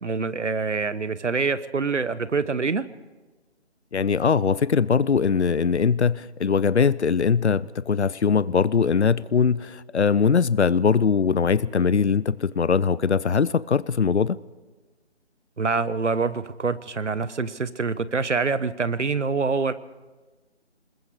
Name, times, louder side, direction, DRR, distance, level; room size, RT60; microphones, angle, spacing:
voice 1, 0.0-2.9 15.6-19.7, right 4 dB, 85° right, 15 dB, 1.2 m, -25 dB
voice 2, 3.9-14.4, left 6 dB, 70° left, 19 dB, 0.7 m, -21 dB
28.0 x 21.0 x 4.9 m, 1.2 s
figure-of-eight pair, 175°, 35 cm